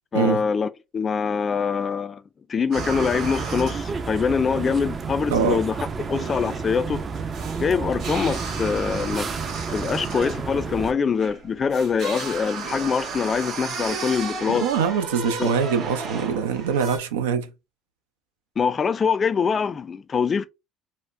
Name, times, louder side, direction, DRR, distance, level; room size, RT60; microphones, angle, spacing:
voice 1, 0.1-2.2 2.5-5.8 6.1-7.0 7.6-9.3 9.7-14.7 15.4-15.5 18.6-20.5, left 6 dB, 35° left, 0.4 m, -24 dB
sound 1, 2.7-10.9, right 5 dB, 35° right, 0.5 m, -31 dB
sound 2, 2.7-17.0, right 4 dB, 65° right, 1.7 m, -35 dB
voice 2, 14.6-17.5, right 6 dB, 90° right, 0.5 m, -23 dB
4.1 x 2.0 x 2.4 m
hypercardioid pair, 70°, 0 cm